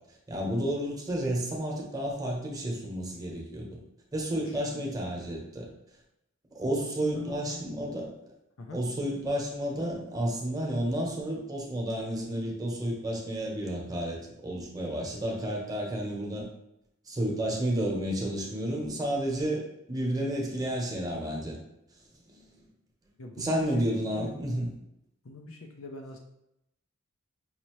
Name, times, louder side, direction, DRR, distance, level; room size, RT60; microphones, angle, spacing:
voice 1, 0.3-3.8 4.1-5.7 6.5-8.1 8.7-16.5 17.1-19.6 19.9-21.6 22.3-22.6 23.4-24.7, right 1 dB, 20° right, -2 dB, 1.0 m, -31 dB
voice 2, 6.8-7.7 8.6-8.8 23.2-24.3 25.2-26.2, left 2 dB, 75° left, 2 dB, 0.6 m, -42 dB
5.6 x 2.7 x 3.0 m, 0.83 s
head